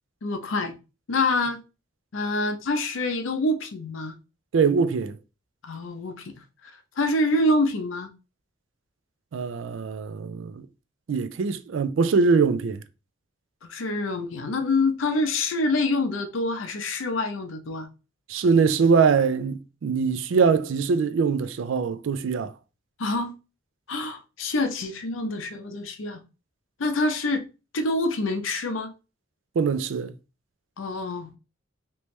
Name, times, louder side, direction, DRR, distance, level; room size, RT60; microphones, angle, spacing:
voice 1, 0.2-0.8 1.1-1.6 2.1-4.2 5.6-6.3 6.6-6.7 7.0-8.1 13.7-17.9 23.0-23.4 23.9-26.2 26.8-27.5 27.7-28.9 30.8-31.3, left 2 dB, 85° left, 0.6 m, -26 dB
voice 2, 4.5-5.2 9.3-10.6 11.1-12.8 18.3-22.5 29.6-30.1, right 5 dB, 75° right, 0.4 m, -22 dB
3.3 x 3.0 x 3.1 m
head